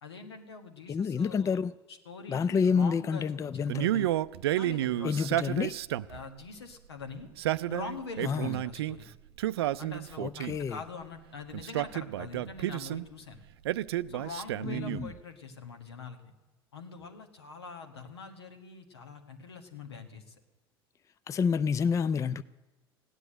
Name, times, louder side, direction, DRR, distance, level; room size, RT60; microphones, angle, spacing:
voice 1, 0.0-1.6 1.9-3.8 4.6-5.3 6.1-7.3 7.7-9.0 9.8-13.4 14.1-16.3 16.7-20.3, left 4 dB, 80° left, 1.6 m, -44 dB
voice 2, 0.9-1.7 2.3-4.1 5.0-5.7 8.2-8.6 10.2-10.8 14.6-15.1 21.3-22.4, left 6 dB, 25° left, 0.4 m, -29 dB
Male speech man speaking, 3.7-6.2 7.2-9.0 9.4-10.7 11.5-13.0 13.6-15.2, right 14 dB, 75° right, 0.4 m, -31 dB
16.0 x 9.8 x 7.7 m
figure-of-eight pair, 70°, 13 cm